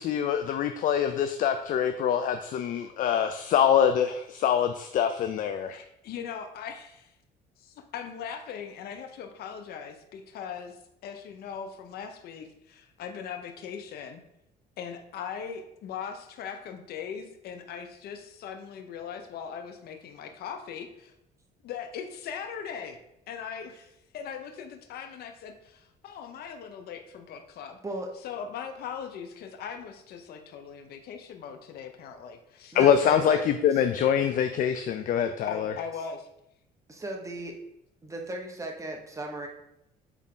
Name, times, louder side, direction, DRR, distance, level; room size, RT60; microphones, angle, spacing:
voice 1, 0.0-5.8 32.7-35.7, left 8 dB, 55° left, 8 dB, 0.4 m, -24 dB
voice 2, 5.7-7.1 7.6-14.2 14.8-21.1 21.6-23.0 23.3-27.8 28.2-32.8 34.2-34.3 35.5-36.3, left 7 dB, 70° left, 6 dB, 0.9 m, -40 dB
voice 3, 32.7-33.8 36.9-37.5 38.0-39.5, right 2 dB, 20° right, 1 dB, 1.2 m, -36 dB
8.1 x 3.6 x 3.8 m, 0.81 s
cardioid pair, 110°, 17 cm